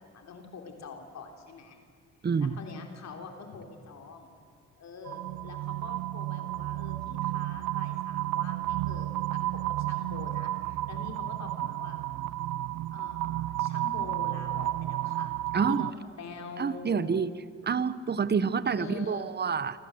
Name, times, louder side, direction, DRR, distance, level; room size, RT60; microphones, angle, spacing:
voice 1, 0.0-1.8 2.2-4.3 4.8-12.0 12.9-15.4 15.6-15.9 16.2-17.2 18.7-19.3, left 4 dB, 60° left, 4 dB, 3.6 m, -45 dB
sound 1, 5.0-15.9, right 15 dB, 80° right, 0.6 m, -32 dB
voice 2, 15.5-15.9 16.6-17.3 17.6-19.8, right 6 dB, 35° right, 16 dB, 1.1 m, -27 dB
27.0 x 27.0 x 7.9 m, 2.3 s
cardioid pair, 90°, 30 cm